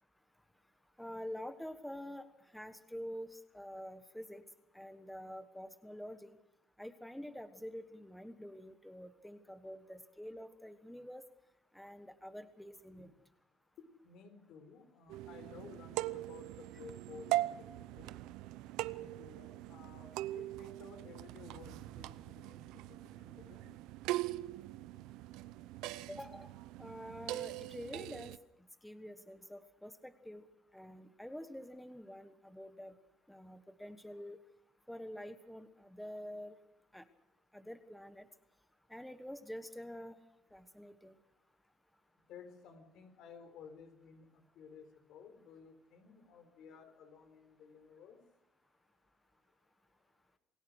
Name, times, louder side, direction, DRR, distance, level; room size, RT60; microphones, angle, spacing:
voice 1, 1.0-2.3 2.5-4.4 4.7-6.3 6.8-11.2 11.7-13.1 26.1-26.5 26.8-28.3 28.8-30.4 30.7-32.9 33.3-34.4 34.9-36.6 36.9-37.0 37.5-38.3 38.9-40.2 40.5-41.2, equal, 5° left, 10 dB, 1.3 m, -47 dB
voice 2, 13.8-18.2 19.0-23.8 42.3-44.3 44.5-48.2, left 6 dB, 70° left, 9 dB, 4.3 m, -55 dB
sound 1, 15.1-28.4, right 17 dB, 85° right, 0.7 m, -41 dB
28.0 x 16.5 x 6.4 m, 0.89 s
cardioid pair, 110°, 0 cm